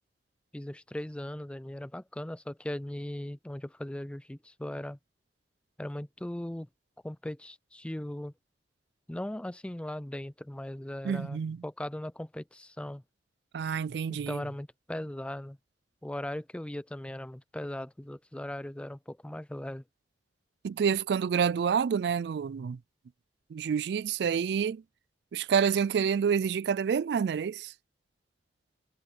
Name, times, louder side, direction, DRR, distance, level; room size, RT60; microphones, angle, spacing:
voice 1, 0.5-5.0 5.8-6.7 7.0-8.3 9.1-13.0 14.3-15.6 16.0-19.8, left 1 dB, 5° left, 0.4 m, -38 dB
voice 2, 11.0-11.6 13.5-14.4 20.6-22.8 23.5-24.8 25.3-27.7, right 7 dB, 65° right, 0.3 m, -28 dB
head